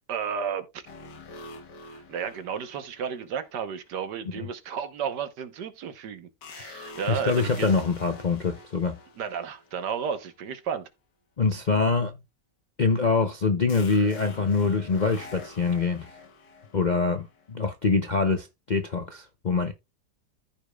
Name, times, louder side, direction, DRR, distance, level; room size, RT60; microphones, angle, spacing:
voice 1, 0.1-0.8 1.9-7.7 9.2-10.9, right 7 dB, 80° right, 1.7 m, -33 dB
sound 1, 0.9-3.8 6.4-10.0 13.7-17.5, left 3 dB, 90° left, 1.9 m, -46 dB
voice 2, 7.1-9.0 11.4-12.2 12.8-16.1 16.7-19.7, left 4 dB, 50° left, 0.5 m, -25 dB
14.0 x 5.0 x 2.3 m
omnidirectional pair, 1.8 m